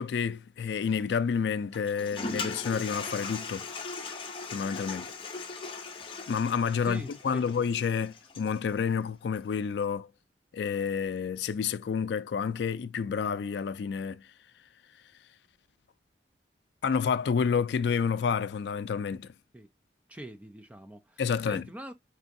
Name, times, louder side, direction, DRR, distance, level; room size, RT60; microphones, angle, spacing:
voice 1, 0.0-3.7 4.5-5.1 6.3-10.1 10.5-14.2 16.8-19.3 21.2-21.7, left 6 dB, 75° left, 0.3 m, -29 dB
Toilet flush, 1.7-8.7, left 4 dB, 30° left, 0.6 m, -39 dB
voice 2, 6.8-7.5 19.5-19.7 20.1-21.9, right 1 dB, 10° right, 0.4 m, -43 dB
4.7 x 3.4 x 2.5 m
head